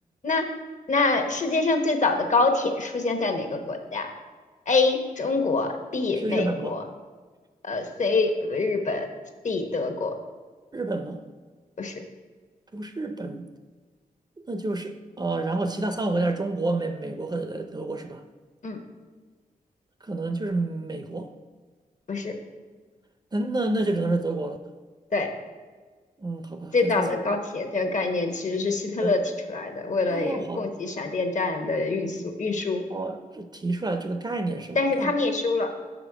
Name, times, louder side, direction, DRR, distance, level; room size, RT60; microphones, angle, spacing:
voice 1, 0.9-4.1 4.7-6.8 7.6-9.1 9.4-10.2 11.8-12.0 18.6-18.8 22.1-22.3 25.1-25.3 26.7-29.2 29.5-32.8 34.7-35.7, left 3 dB, 55° left, 5 dB, 1.0 m, -25 dB
voice 2, 6.1-6.7 10.7-11.2 12.7-13.4 14.4-18.2 20.0-21.3 23.3-24.6 26.2-27.1 29.0-29.1 30.1-30.7 32.9-35.1, right 2 dB, 25° right, 7 dB, 0.5 m, -29 dB
6.0 x 5.1 x 4.8 m, 1.4 s
cardioid pair, 60°, 15 cm